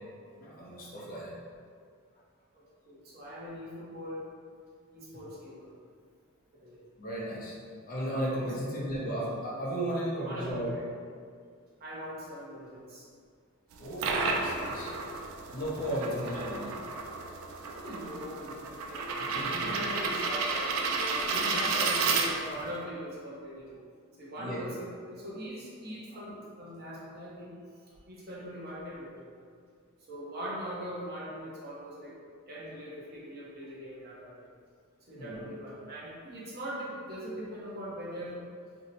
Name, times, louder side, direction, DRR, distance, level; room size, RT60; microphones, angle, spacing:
voice 1, 0.4-1.4 7.0-7.6 7.9-10.7 13.8-14.9 15.5-16.8 17.6-17.7 19.3-19.7 21.7-21.8 24.4-24.7 35.1-35.5, right 1 dB, 40° left, -5 dB, 0.6 m, -35 dB
voice 2, 2.5-4.2 4.9-5.7 6.5-6.8 8.6-8.9 10.2-10.8 11.8-13.1 17.8-19.0 19.4-23.7 24.2-27.5 28.1-29.3 30.1-32.1 32.5-34.5 35.1-38.4, equal, 45° right, -6 dB, 0.7 m, -41 dB
sound 1, 13.7-22.7, right 4 dB, 70° right, 0.3 m, -32 dB
2.7 x 2.1 x 3.9 m, 2.1 s
head